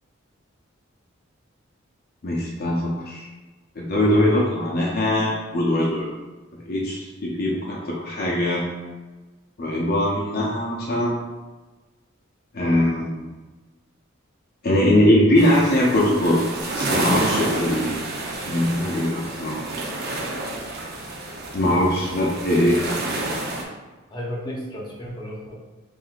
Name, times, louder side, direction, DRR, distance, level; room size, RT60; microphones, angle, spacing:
voice 1, 2.2-3.3 3.8-6.1 6.5-8.7 9.6-11.2 12.5-13.2 14.6-16.4 16.8-18.1 18.4-19.6 21.5-22.8, left 1 dB, 50° left, -4 dB, 0.6 m, -21 dB
sound 1, 15.4-23.6, right 2 dB, 55° right, 0.7 m, -29 dB
voice 2, 24.1-25.5, equal, 20° left, -3 dB, 0.9 m, -34 dB
5.7 x 2.6 x 2.5 m, 1.3 s
head